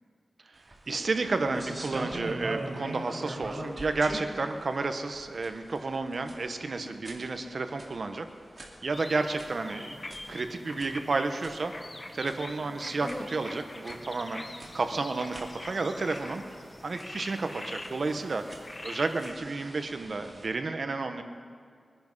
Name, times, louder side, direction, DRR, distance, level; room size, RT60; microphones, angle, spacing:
voice 1, 0.5-8.2 8.8-10.0 10.3-11.7 12.1-16.4 16.8-18.4 18.8-21.2, right 3 dB, 60° right, 7 dB, 1.1 m, -31 dB
sound 1, 0.6-20.5, right 1 dB, 30° right, 2.8 m, -44 dB
sound 2, 8.9-19.3, left 1 dB, 30° left, 1.1 m, -43 dB
23.5 x 10.0 x 5.5 m, 2.2 s
wide cardioid pair, 100°, 0 cm